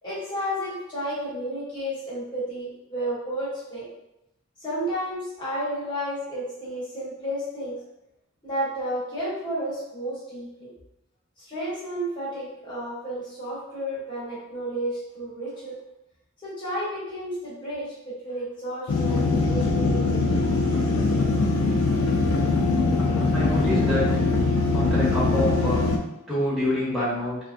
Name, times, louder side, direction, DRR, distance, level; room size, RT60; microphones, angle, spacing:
voice 1, 0.0-3.8 4.6-7.7 8.4-10.7 11.5-15.7 16.4-20.4, equal, 20° left, -9 dB, 1.0 m, -32 dB
sound 1, 18.9-26.0, left 3 dB, 80° left, 0.4 m, -22 dB
voice 2, 23.3-24.0 24.7-25.8 26.3-27.4, left 1 dB, ahead, -11 dB, 1.1 m, -26 dB
2.3 x 2.1 x 2.5 m, 0.88 s
head